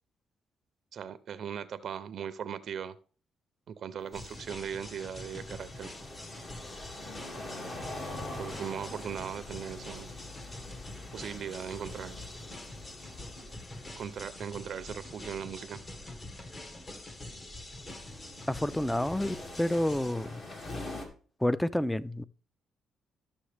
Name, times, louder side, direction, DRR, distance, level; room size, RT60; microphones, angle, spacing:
voice 1, 0.9-3.0 3.7-5.9 8.3-10.1 11.1-12.2 14.0-15.8, right 8 dB, 60° right, 0.5 m, -39 dB
sound 1, 4.0-21.1, left 2 dB, 50° left, 2.2 m, -45 dB
sound 2, 4.1-20.1, left 1 dB, 30° left, 1.3 m, -45 dB
voice 2, 18.5-20.4 21.4-22.2, left 1 dB, 5° left, 0.4 m, -29 dB
12.5 x 6.3 x 3.3 m
cardioid pair, 90°, 0 cm